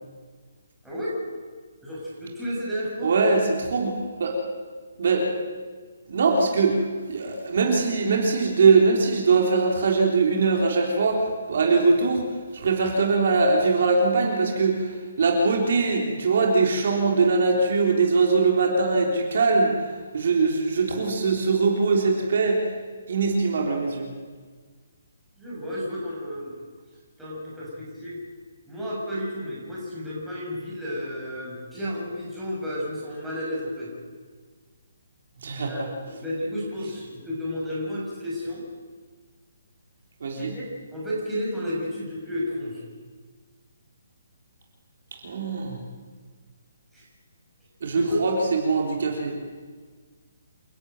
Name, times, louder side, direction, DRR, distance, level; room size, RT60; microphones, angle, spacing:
voice 1, 0.8-1.1 1.8-3.1 25.4-26.7 27.2-28.2 28.7-33.9 35.6-38.6 40.4-42.8 46.9-47.0 47.9-48.2, equal, ahead, -8 dB, 6.3 m, -32 dB
voice 2, 3.0-3.9 4.2-4.4 5.0-5.3 6.1-12.3 12.5-19.7 20.1-22.7 23.1-24.1 35.4-35.9 40.2-40.5 45.2-45.8 47.8-49.3, right 4 dB, 55° right, 0 dB, 3.6 m, -22 dB
29.0 x 12.0 x 9.1 m, 1.5 s
hypercardioid pair, 170°, 0 cm